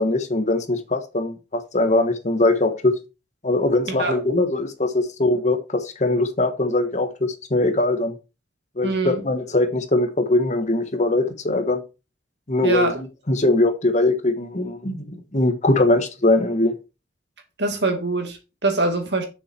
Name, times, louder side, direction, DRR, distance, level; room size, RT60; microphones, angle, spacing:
voice 1, 0.0-2.9 3.4-7.1 7.5-8.2 8.8-11.8 12.5-16.7, left 2 dB, 40° left, 1.3 m, -21 dB
voice 2, 8.8-9.2 12.6-13.0 17.6-19.3, right 2 dB, 65° right, 2.2 m, -23 dB
6.8 x 6.4 x 4.5 m
head